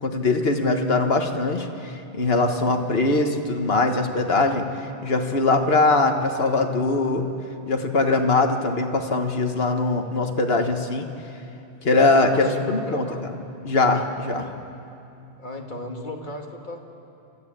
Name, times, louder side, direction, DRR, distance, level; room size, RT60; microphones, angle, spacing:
voice 1, 0.0-7.3 7.7-11.1 11.8-13.3 13.6-14.5, left 3 dB, 65° left, 5 dB, 1.7 m, -22 dB
voice 2, 12.3-13.2 15.4-16.8, left 2 dB, 45° left, 2 dB, 2.1 m, -35 dB
28.0 x 13.5 x 8.9 m, 2.7 s
omnidirectional pair, 1.1 m